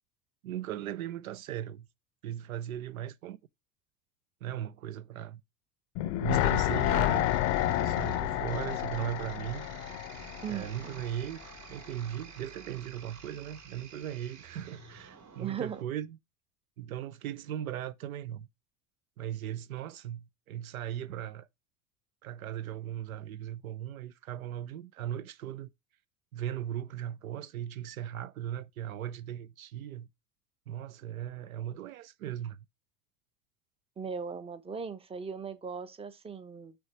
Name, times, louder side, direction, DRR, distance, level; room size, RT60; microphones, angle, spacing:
voice 1, 0.4-1.9 2.2-3.4 4.4-5.4 6.2-7.3 7.6-9.7 10.5-11.4 11.7-16.2 16.8-18.5 19.2-21.5 22.2-25.7 26.3-30.1 30.7-32.6, right 11 dB, 70° right, 0.6 m, -38 dB
sound 1, 5.9-11.1 11.4-11.5, left 15 dB, 40° left, 0.6 m, -30 dB
sound 2, 6.3-15.8, right 7 dB, 50° right, 3.2 m, -48 dB
voice 2, 10.4-11.0 15.4-15.8 34.0-36.8, right 6 dB, 15° right, 0.8 m, -38 dB
6.2 x 3.3 x 5.9 m
figure-of-eight pair, 75°, 43 cm